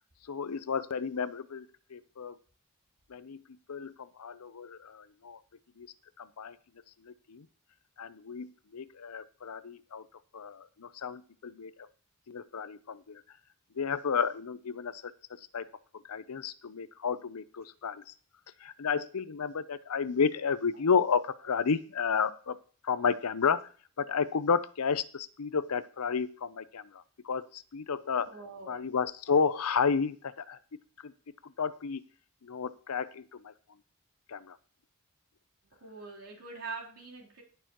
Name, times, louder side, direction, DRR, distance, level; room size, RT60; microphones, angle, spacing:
voice 1, 0.3-1.7 1.9-2.4 3.1-3.4 3.7-5.4 5.8-5.9 6.2-6.6 7.0-7.5 8.0-8.5 8.7-10.0 10.3-11.7 12.3-13.2 13.8-15.1 15.5-15.6 16.1-18.0 18.6-22.6 22.8-23.6 24.0-28.3 28.7-30.6 31.0-31.1 31.6-32.0 32.4-33.5 34.3-34.6, left 6 dB, 75° left, 15 dB, 0.6 m, -31 dB
voice 2, 28.2-28.9 35.8-37.4, right 4 dB, 70° right, -3 dB, 3.5 m, -44 dB
19.5 x 6.8 x 3.0 m, 0.43 s
head